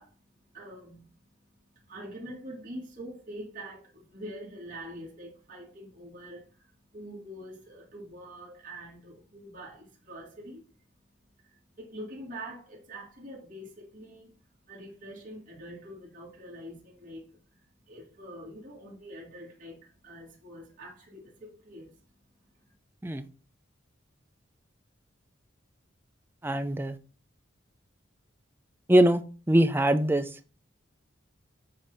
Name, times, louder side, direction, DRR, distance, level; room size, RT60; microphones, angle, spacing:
voice 1, 0.0-22.7, right 1 dB, 45° right, 2.2 m, -45 dB
voice 2, 26.4-27.0 28.9-29.2 29.5-30.6, right 1 dB, 10° right, 0.4 m, -23 dB
7.8 x 2.8 x 5.5 m
head